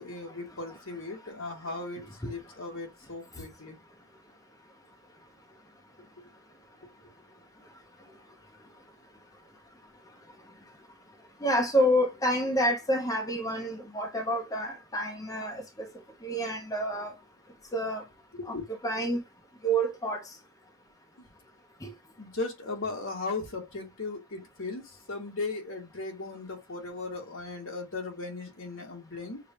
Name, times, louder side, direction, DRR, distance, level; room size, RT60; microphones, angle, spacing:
voice 1, 0.0-3.8 6.2-6.3 7.0-7.1 18.3-18.6 22.2-29.4, left 3 dB, 65° left, 1.5 m, -37 dB
voice 2, 2.0-2.3 11.4-15.9 16.2-17.1 17.7-18.0 18.4-18.6 18.8-19.2 19.6-20.2 21.8-21.9, equal, 15° left, 0.7 m, -28 dB
6.7 x 2.3 x 2.8 m
head